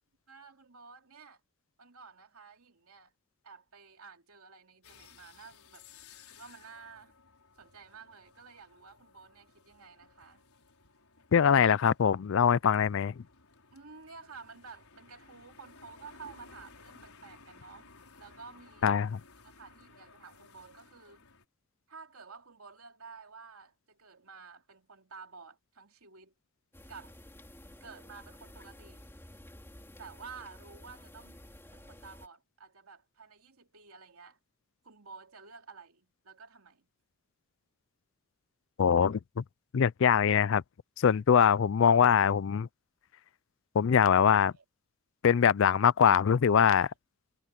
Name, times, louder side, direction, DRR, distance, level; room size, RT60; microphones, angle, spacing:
voice 1, 0.3-1.4 1.8-3.1 3.4-5.9 6.2-7.2 7.6-10.4 13.7-17.9 18.2-18.9 19.4-21.2 21.9-26.3 26.9-27.2 27.8-29.0 30.0-31.4 31.7-34.4 34.8-36.9 44.2-44.6, right 5 dB, 80° right, 3.0 m, -51 dB
sound 1, 4.8-21.5, left 4 dB, 80° left, 5.0 m, -58 dB
voice 2, 11.3-13.2 18.8-19.2 38.8-39.4 39.7-40.6 41.0-42.7 43.7-44.5 45.2-46.9, left 7 dB, 60° left, 0.4 m, -23 dB
sound 2, 26.7-32.3, left 1 dB, 10° left, 3.2 m, -52 dB
head